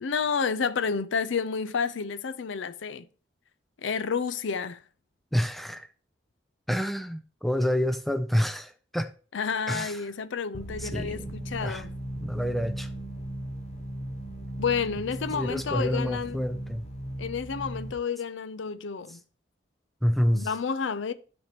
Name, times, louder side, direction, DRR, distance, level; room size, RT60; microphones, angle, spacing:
voice 1, 0.0-3.1 3.8-4.8 9.3-11.9 14.6-16.4 17.2-19.2 20.3-21.1, left 6 dB, 75° left, 0.5 m, -30 dB
voice 2, 5.3-5.9 6.7-9.1 9.7-10.0 10.8-11.3 11.6-11.8 12.2-12.9 15.3-16.9 20.0-20.5, equal, ahead, 0.3 m, -28 dB
sound 1, 10.5-17.9, right 1 dB, 35° left, 1.1 m, -37 dB
13.0 x 4.4 x 2.9 m
head